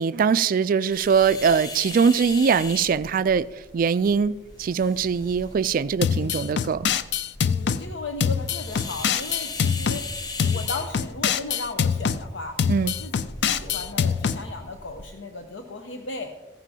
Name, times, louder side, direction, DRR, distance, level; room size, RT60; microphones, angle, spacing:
voice 1, 0.0-3.5 3.7-4.3 4.6-6.9 12.7-13.0, right 6 dB, 50° right, 0.3 m, -22 dB
sound 1, 0.9-15.1, left 3 dB, 20° left, 0.6 m, -40 dB
sound 2, 6.0-7.8 8.2-10.0 10.4-12.2 12.6-14.4, left 7 dB, 65° left, 0.4 m, -24 dB
voice 2, 6.1-6.4 7.5-10.0 10.4-12.6 12.8-13.1 13.4-16.3, left 2 dB, 90° left, 0.8 m, -36 dB
15.0 x 11.0 x 2.8 m
head